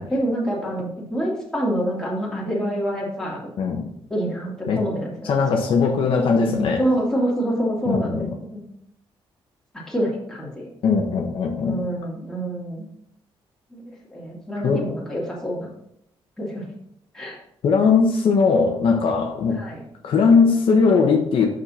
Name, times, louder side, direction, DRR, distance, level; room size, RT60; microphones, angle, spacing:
voice 1, 0.1-3.4 4.1-5.4 6.4-8.7 9.9-10.7 11.6-12.8 13.7-13.8 14.1-15.7 16.4-16.6 17.1-17.4 19.6-19.8, right 1 dB, 5° left, -5 dB, 2.2 m, -26 dB
voice 2, 3.6-3.9 4.7-4.8 5.2-6.8 7.9-8.3 10.8-11.8 14.6-14.9 17.6-19.6 20.0-21.5, left 5 dB, 65° left, 2 dB, 1.0 m, -19 dB
6.6 x 5.8 x 4.1 m, 0.75 s
cardioid pair, 145°, 10 cm